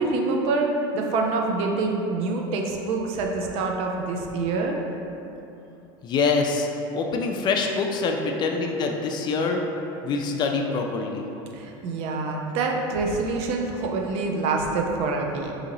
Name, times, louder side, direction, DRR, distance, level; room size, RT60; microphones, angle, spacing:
voice 1, 0.0-4.8 11.5-15.5, right 3 dB, 60° right, 1 dB, 0.5 m, -26 dB
voice 2, 6.0-6.7 6.9-9.6 10.0-11.2, left 4 dB, 40° left, 2 dB, 0.3 m, -25 dB
2.8 x 2.7 x 3.9 m, 2.9 s
supercardioid pair, 115°, 12 cm